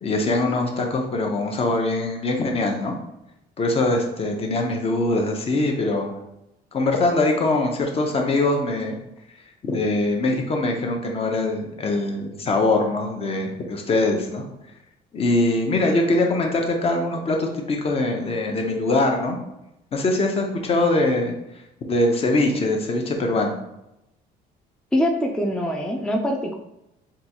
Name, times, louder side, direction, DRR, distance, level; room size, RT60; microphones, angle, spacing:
voice 1, 0.0-3.0 3.6-6.1 6.7-9.0 9.6-14.4 15.1-19.4 19.9-21.3 21.9-23.6, left 2 dB, 35° left, 2 dB, 0.7 m, -22 dB
voice 2, 24.9-26.6, equal, 5° left, 2 dB, 0.3 m, -23 dB
3.8 x 2.3 x 2.8 m, 0.88 s
cardioid pair, 110°, 17 cm